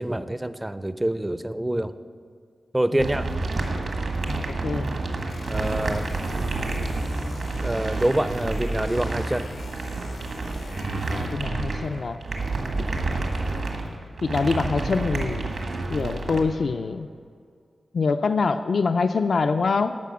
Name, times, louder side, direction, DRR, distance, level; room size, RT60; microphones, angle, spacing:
voice 1, 0.0-1.9 2.7-3.3 5.5-6.1 7.6-9.6, right 1 dB, 10° right, 12 dB, 0.4 m, -26 dB
sound 1, 3.0-16.4, right 3 dB, 75° right, 1.7 m, -29 dB
voice 2, 4.3-4.9 11.1-12.2 12.8-12.9 14.2-17.1 17.9-20.0, left 4 dB, 65° left, 9 dB, 0.4 m, -25 dB
sound 2, 5.3-11.5, left 2 dB, 85° left, 0.8 m, -41 dB
13.5 x 6.1 x 7.3 m, 2.2 s
wide cardioid pair, 125°, 0 cm